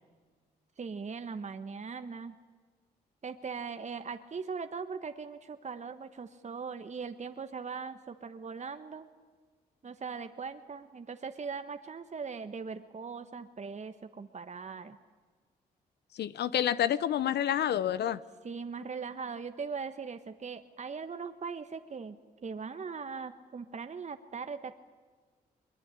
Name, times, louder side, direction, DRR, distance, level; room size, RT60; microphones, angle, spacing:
voice 1, 0.8-2.4 3.2-9.1 9.8-15.0 18.4-22.2 22.4-24.7, right 5 dB, 40° right, 9 dB, 1.4 m, -40 dB
voice 2, 16.1-18.2, left 10 dB, 75° left, 16 dB, 0.8 m, -28 dB
22.0 x 22.0 x 9.9 m, 1.5 s
supercardioid pair, 55°, 17 cm